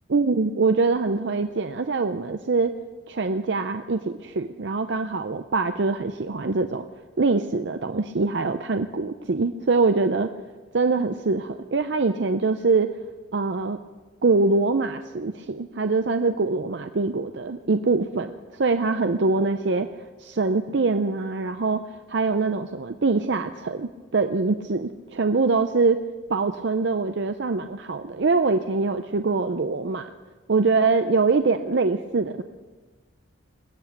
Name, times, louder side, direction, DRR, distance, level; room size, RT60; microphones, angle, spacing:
voice 1, 0.1-2.7 3.1-6.9 7.2-10.3 10.7-12.9 13.3-13.8 14.2-19.9 20.2-21.8 22.1-26.0 26.3-30.1 30.5-32.4, right 3 dB, 60° right, 9 dB, 0.5 m, -23 dB
21.0 x 8.0 x 8.6 m, 1.3 s
head